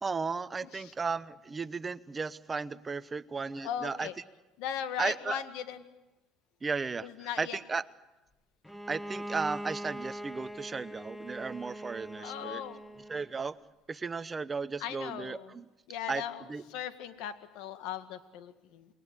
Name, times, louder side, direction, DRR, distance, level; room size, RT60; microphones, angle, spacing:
voice 1, 0.0-4.1 5.0-5.4 6.6-7.8 8.9-12.6 13.1-13.6 13.9-15.6 16.1-16.2 16.5-16.6, right 4 dB, 20° right, 14 dB, 0.9 m, -35 dB
voice 2, 3.6-4.1 4.6-5.8 7.0-7.6 12.2-12.8 14.8-15.5 15.9-16.4 16.7-18.9, left 10 dB, 75° left, 9 dB, 1.9 m, -38 dB
Bowed string instrument, 8.6-13.3, equal, 5° left, 1.1 m, -42 dB
28.5 x 21.0 x 8.3 m, 1.0 s
supercardioid pair, 110°, 0 cm